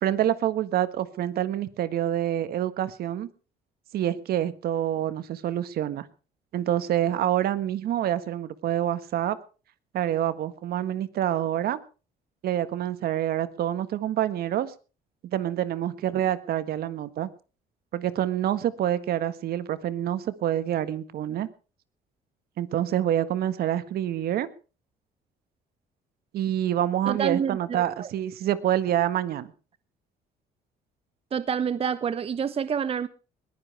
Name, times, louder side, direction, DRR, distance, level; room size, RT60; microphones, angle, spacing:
voice 1, 0.0-3.3 3.9-6.1 6.5-9.4 9.9-11.8 12.4-14.7 15.3-17.3 17.9-21.5 22.6-24.5 26.3-29.5, right 11 dB, 65° right, 1.6 m, -27 dB
voice 2, 27.1-28.1 31.3-33.1, right 7 dB, 35° right, 0.9 m, -28 dB
21.0 x 15.0 x 3.4 m
cardioid pair, 110°, 17 cm